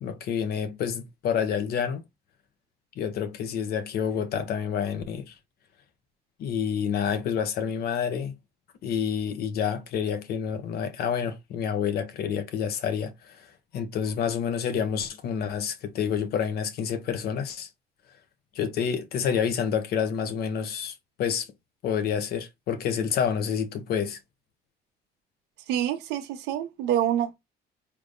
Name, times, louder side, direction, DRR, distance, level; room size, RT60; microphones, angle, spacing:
voice 1, 0.0-2.0 3.0-5.3 6.4-8.3 8.8-13.5 13.7-17.7 18.5-21.5 21.8-24.2, left 7 dB, 65° left, 1.0 m, -28 dB
voice 2, 25.7-27.3, right 11 dB, 90° right, 0.9 m, -26 dB
5.2 x 3.5 x 2.2 m
cardioid pair, 110°, 17 cm